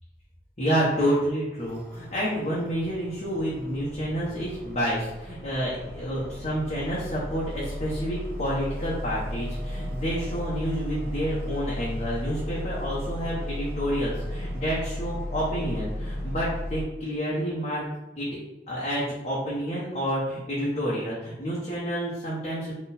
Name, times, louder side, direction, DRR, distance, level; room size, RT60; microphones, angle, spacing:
voice 1, 0.6-17.8 18.2-18.3 18.7-22.7, equal, 35° left, -7 dB, 0.9 m, -29 dB
sound 1, 1.6-16.8, left 1 dB, 70° right, 1.5 m, -35 dB
4.1 x 3.1 x 4.1 m, 1.0 s
head